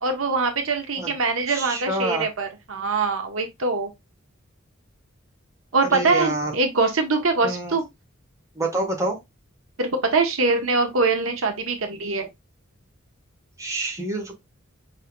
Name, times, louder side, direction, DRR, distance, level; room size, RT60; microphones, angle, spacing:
voice 1, 0.0-3.9 5.7-7.8 9.8-12.3, right 3 dB, 80° right, 1.1 m, -23 dB
voice 2, 1.5-2.3 5.9-6.5 7.4-7.7 8.6-9.2 13.6-14.4, right 1 dB, 15° right, 1.4 m, -27 dB
5.2 x 4.1 x 2.3 m
head